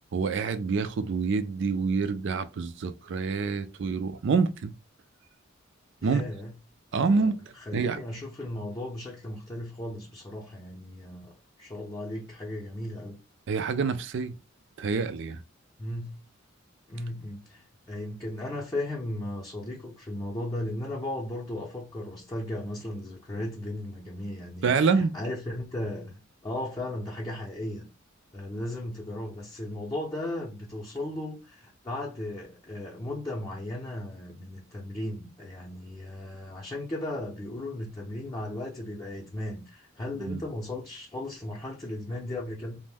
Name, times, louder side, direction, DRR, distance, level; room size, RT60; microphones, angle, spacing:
voice 1, 0.1-4.7 6.0-6.2 6.9-7.4 7.7-8.0 13.5-14.3 14.8-15.4 24.6-25.1 40.2-40.4, right 4 dB, 60° right, 0.4 m, -27 dB
voice 2, 6.0-6.5 6.9-7.3 7.7-11.3 11.6-13.2 15.8-16.2 16.9-27.9 28.3-42.8, left 1 dB, 20° left, 0.6 m, -36 dB
2.5 x 2.0 x 3.4 m
head